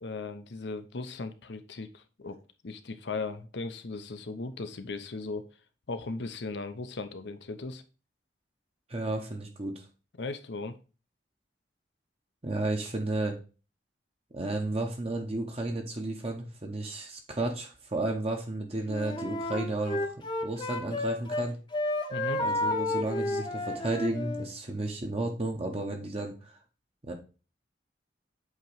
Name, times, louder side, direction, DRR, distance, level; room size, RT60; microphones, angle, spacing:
voice 1, 0.0-2.4 2.6-5.4 5.9-7.8 10.2-10.7 22.1-22.4, left 3 dB, 70° left, 9 dB, 0.7 m, -37 dB
voice 2, 8.9-9.8 12.4-13.3 14.3-20.1 20.4-21.6 22.4-26.5 27.0-27.1, right 2 dB, 35° right, 2 dB, 0.9 m, -32 dB
Wind instrument woodwind instrument, 18.9-21.5 21.7-24.5, left 2 dB, 25° left, 0.8 m, -31 dB
8.2 x 3.0 x 4.5 m, 0.33 s
head